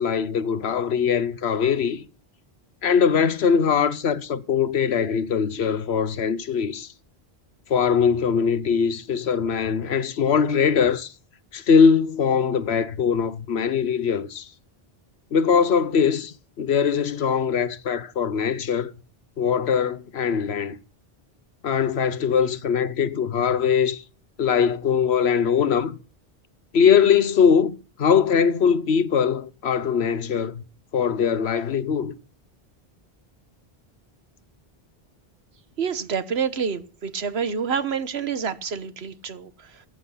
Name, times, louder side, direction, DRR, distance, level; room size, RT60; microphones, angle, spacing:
voice 1, 0.0-2.0 2.8-6.9 7.7-11.1 11.5-14.5 15.3-18.9 19.4-20.8 21.6-24.0 24.4-25.9 26.7-30.6 30.9-32.1, left 6 dB, 85° left, 1.2 m, -21 dB
voice 2, 35.8-39.8, right 6 dB, 85° right, 1.4 m, -28 dB
15.0 x 9.1 x 5.7 m
omnidirectional pair, 1.0 m